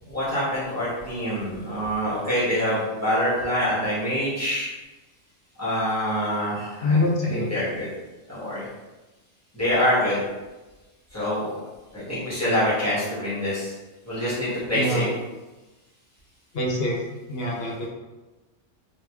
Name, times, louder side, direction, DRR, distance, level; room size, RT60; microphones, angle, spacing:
voice 1, 0.0-4.7 5.6-7.9 8.3-8.6 9.5-10.2 11.1-11.5 11.9-13.7 14.0-15.1, equal, 10° left, -11 dB, 1.5 m, -25 dB
voice 2, 6.8-7.6 14.7-15.0 16.5-17.0 17.3-17.9, left 1 dB, 60° left, -2 dB, 0.9 m, -24 dB
3.3 x 3.0 x 3.0 m, 1.1 s
omnidirectional pair, 1.3 m